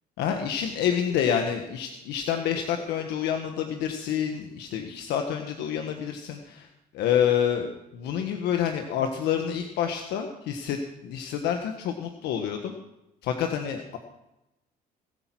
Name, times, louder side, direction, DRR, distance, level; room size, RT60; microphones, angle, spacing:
voice 1, 0.2-6.7 6.9-12.7 13.2-14.0, left 8 dB, 85° left, 5 dB, 1.5 m, -28 dB
19.5 x 9.0 x 6.1 m, 0.92 s
cardioid pair, 110°, 17 cm